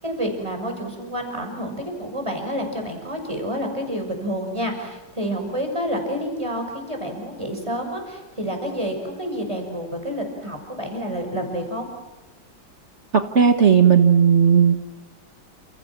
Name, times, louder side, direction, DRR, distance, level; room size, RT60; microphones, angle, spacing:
voice 1, 0.0-11.9, equal, 15° right, 4 dB, 6.1 m, -29 dB
voice 2, 13.3-14.8, right 7 dB, 40° right, 7 dB, 1.4 m, -15 dB
30.0 x 28.0 x 6.0 m, 1.1 s
omnidirectional pair, 2.1 m